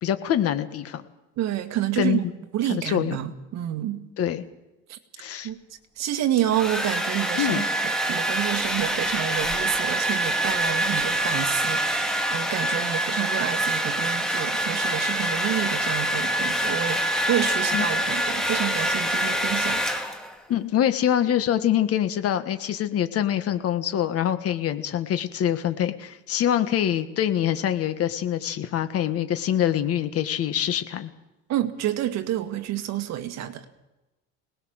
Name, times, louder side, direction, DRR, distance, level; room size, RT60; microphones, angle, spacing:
voice 1, 0.0-1.0 2.0-2.2 2.7-3.2 4.2-4.4 5.2-5.5 7.4-7.6 17.7-17.8 20.5-31.1, left 10 dB, 50° left, 10 dB, 1.6 m, -25 dB
voice 2, 1.4-2.2 2.5-4.0 4.9-5.0 5.4-5.6 6.0-19.8 31.5-33.7, right 12 dB, 60° right, 6 dB, 1.9 m, -29 dB
Domestic sounds home sounds, 6.1-20.4, right 1 dB, ahead, 2.3 m, -25 dB
22.5 x 19.5 x 6.5 m, 0.99 s
cardioid pair, 135°, 31 cm